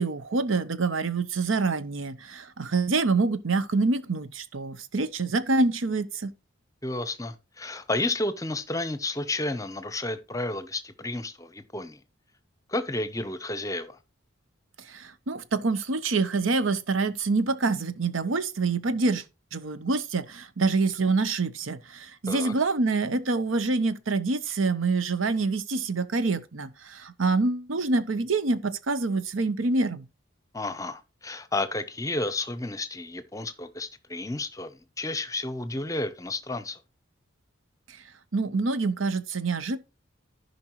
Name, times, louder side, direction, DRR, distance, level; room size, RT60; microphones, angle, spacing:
voice 1, 0.0-6.3 14.9-19.2 19.5-30.0 38.3-39.8, right 3 dB, 85° right, 0.8 m, -26 dB
voice 2, 6.8-12.0 12.7-14.0 22.3-22.5 30.5-36.8, left 2 dB, 15° left, 0.7 m, -31 dB
14.5 x 5.3 x 3.0 m
head